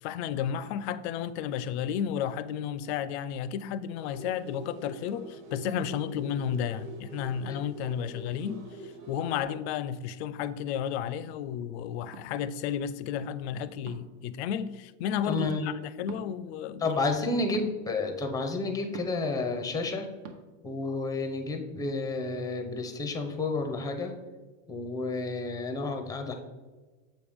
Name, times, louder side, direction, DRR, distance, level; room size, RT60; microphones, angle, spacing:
voice 1, 0.0-17.0, left 9 dB, 55° left, 0.5 m, -32 dB
sound 1, 4.0-9.4, right 2 dB, 75° right, 1.9 m, -44 dB
sound 2, 12.1-12.3 13.8-14.2 16.0-16.2 17.5-17.7 18.9-19.3 20.2-20.4, right 5 dB, 55° right, 1.0 m, -43 dB
voice 2, 15.2-15.8 16.8-20.1 20.6-24.1 24.7-26.3, left 3 dB, 10° left, 0.6 m, -31 dB
7.6 x 5.1 x 3.5 m
supercardioid pair, 145°, 40 cm